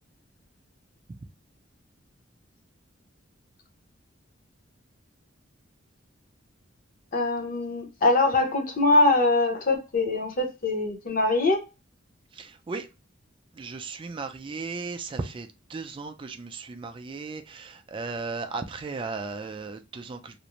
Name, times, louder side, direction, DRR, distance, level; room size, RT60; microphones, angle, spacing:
voice 1, 7.1-11.6, left 2 dB, 45° left, 0.7 m, -23 dB
voice 2, 12.3-12.9 13.5-20.4, right 4 dB, 25° right, 0.3 m, -36 dB
2.5 x 2.0 x 2.8 m
head